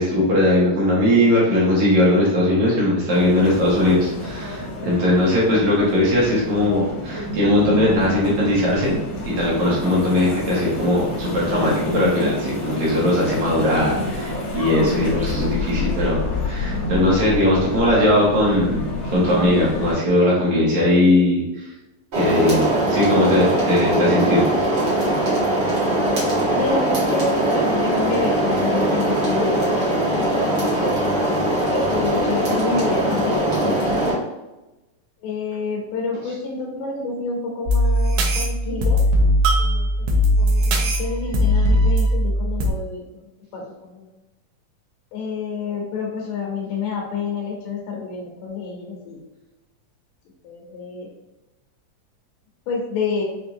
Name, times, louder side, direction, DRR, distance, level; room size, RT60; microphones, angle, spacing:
voice 1, 0.0-9.0 9.3-21.4 22.1-24.5 30.2-30.3, left 1 dB, 70° right, -6 dB, 2.4 m, -19 dB
sound 1, 3.1-19.9, left 2 dB, 50° left, 1.1 m, -28 dB
sound 2, 22.1-34.1, right 1 dB, 40° right, 1.7 m, -21 dB
voice 2, 26.5-30.1 30.3-31.1 31.7-34.2 35.2-39.0 39.6-39.9 40.3-43.0 43.5-44.1 45.1-49.2 50.4-51.1 52.7-53.2, left 4 dB, 80° left, -2 dB, 2.3 m, -28 dB
sound 3, 37.7-42.7, equal, 90° right, 2.3 m, -19 dB
5.9 x 2.6 x 2.6 m, 1.0 s
omnidirectional pair, 3.8 m